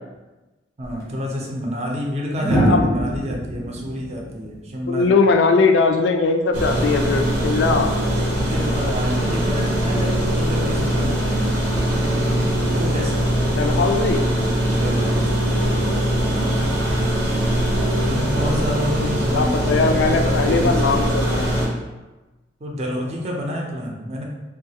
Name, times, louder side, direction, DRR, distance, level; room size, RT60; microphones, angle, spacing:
sound 1, 0.8-1.0 2.4-5.4 7.0-7.3, equal, 20° left, 0.5 m, -24 dB
voice 1, 0.8-5.1 7.4-11.4 12.6-13.3 14.6-15.5 18.0-20.9 22.6-24.2, equal, 35° right, -1 dB, 0.5 m, -29 dB
voice 2, 4.9-7.9 13.5-14.3 19.3-21.6, left 4 dB, 70° left, 5 dB, 0.3 m, -19 dB
sound 2, 6.5-21.7, right 1 dB, 80° right, 0.7 m, -21 dB
3.1 x 2.3 x 2.8 m, 1.1 s
head